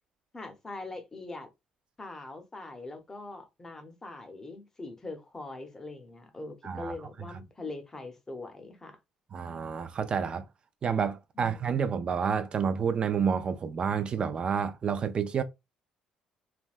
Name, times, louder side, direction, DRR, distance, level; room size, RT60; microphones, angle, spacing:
voice 1, 0.3-1.5 2.0-9.0 11.4-11.8, left 2 dB, 20° left, 0.7 m, -42 dB
voice 2, 6.6-6.9 9.3-10.4 10.8-15.4, right 6 dB, 40° right, 0.3 m, -29 dB
3.3 x 2.1 x 2.4 m
cardioid pair, 100°, 3 cm